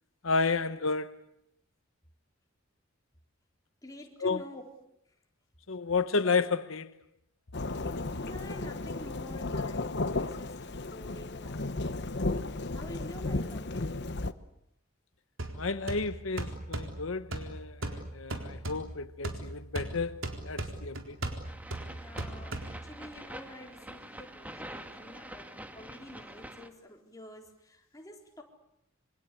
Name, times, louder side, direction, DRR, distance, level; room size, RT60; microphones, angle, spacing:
voice 1, 0.2-1.2 4.2-4.4 5.7-7.0 15.5-21.2, left 4 dB, 90° left, 1.1 m, -31 dB
voice 2, 3.8-4.6 8.2-14.0 21.9-28.4, left 1 dB, 20° left, 4.2 m, -48 dB
Thunderstorm / Rain, 7.5-14.3, left 2 dB, 60° left, 1.1 m, -34 dB
sound 1, 15.4-23.1, right 2 dB, 75° right, 4.0 m, -39 dB
sound 2, 21.4-26.7, right 1 dB, 10° right, 2.0 m, -45 dB
27.0 x 25.0 x 8.4 m
head